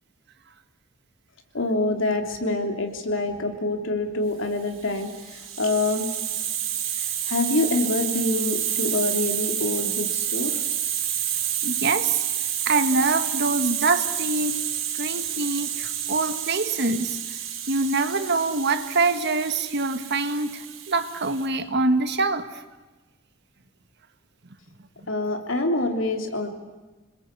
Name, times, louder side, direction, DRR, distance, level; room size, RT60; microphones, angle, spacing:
voice 1, 1.5-6.1 6.9-10.6 25.1-26.5, left 2 dB, 70° left, 4 dB, 3.3 m, -26 dB
Hiss, 4.8-21.5, right 10 dB, 85° right, 4.3 m, -29 dB
voice 2, 11.6-12.2 12.6-14.6 15.0-17.2 17.7-22.6, right 3 dB, 60° right, 9 dB, 1.7 m, -24 dB
26.5 x 21.0 x 8.5 m, 1.2 s
head